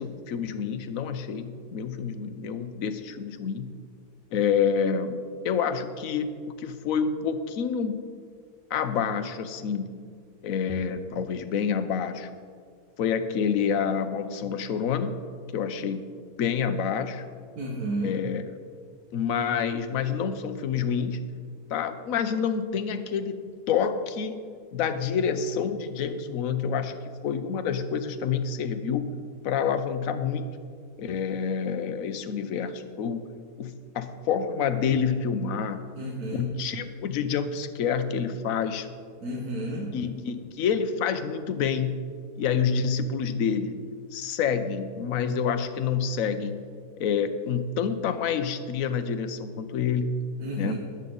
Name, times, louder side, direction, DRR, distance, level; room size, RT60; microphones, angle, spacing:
voice 1, 0.0-3.7 4.3-5.2 5.4-6.3 6.6-8.0 8.7-10.0 10.4-12.3 13.0-17.2 18.0-18.4 19.1-21.3 21.7-24.4 24.7-29.1 29.4-30.5 31.0-33.2 33.6-35.8 36.3-38.9 39.9-42.0 42.4-46.6 47.0-50.2 50.6-50.8, left 6 dB, 65° left, 10 dB, 1.1 m, -28 dB
voice 2, 17.6-18.1 36.0-36.5 39.2-39.9 50.4-50.8, right 1 dB, 70° right, -3 dB, 2.1 m, -31 dB
21.0 x 8.0 x 3.9 m, 2.1 s
omnidirectional pair, 1.6 m